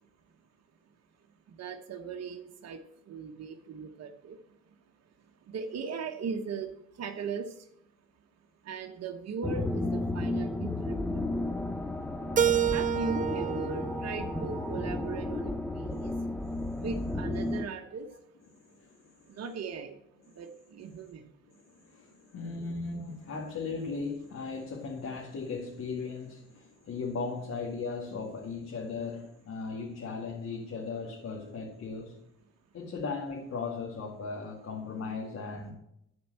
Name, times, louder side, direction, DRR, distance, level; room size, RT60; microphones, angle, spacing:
voice 1, 1.6-2.8 3.1-4.4 5.5-6.7 7.0-7.5 8.6-11.2 12.2-16.1 16.8-18.1 19.3-19.9 20.4-21.3, right 5 dB, 55° right, 4 dB, 1.1 m, -38 dB
sound 1, 9.4-17.6, left 2 dB, 5° left, 0.8 m, -33 dB
Keyboard (musical), 12.4-15.3, right 10 dB, 25° right, 0.4 m, -30 dB
voice 2, 16.4-16.8 17.5-17.6 18.5-19.2 21.7-32.2 32.7-35.7, left 4 dB, 55° left, -1 dB, 2.2 m, -37 dB
13.0 x 4.5 x 7.7 m, 0.79 s
cardioid pair, 90°, 30 cm